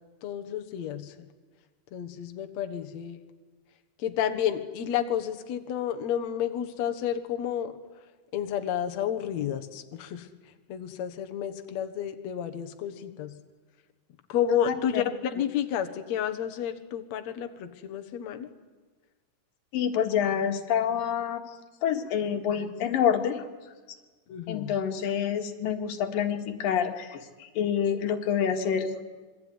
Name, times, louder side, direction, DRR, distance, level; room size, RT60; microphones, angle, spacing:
voice 1, 0.2-1.1 1.9-3.2 4.0-7.7 8.3-10.3 10.7-13.4 14.3-18.5 24.3-24.8, left 9 dB, 60° left, 6 dB, 2.5 m, -31 dB
voice 2, 14.7-15.0 19.7-21.4 21.8-23.5 24.5-29.0, left 8 dB, 90° left, 6 dB, 3.4 m, -27 dB
26.5 x 23.0 x 9.7 m, 1.3 s
omnidirectional pair, 3.9 m